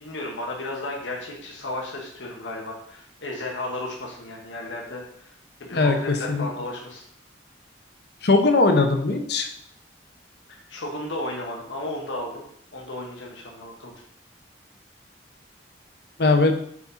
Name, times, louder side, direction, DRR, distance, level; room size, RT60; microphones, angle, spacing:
voice 1, 0.0-5.3 5.6-7.0 10.5-12.4 12.7-13.9, left 1 dB, 90° left, -1 dB, 1.3 m, -34 dB
voice 2, 8.2-9.5 16.2-16.5, left 3 dB, 60° left, 5 dB, 0.8 m, -19 dB
5.3 x 4.9 x 4.0 m, 0.66 s
head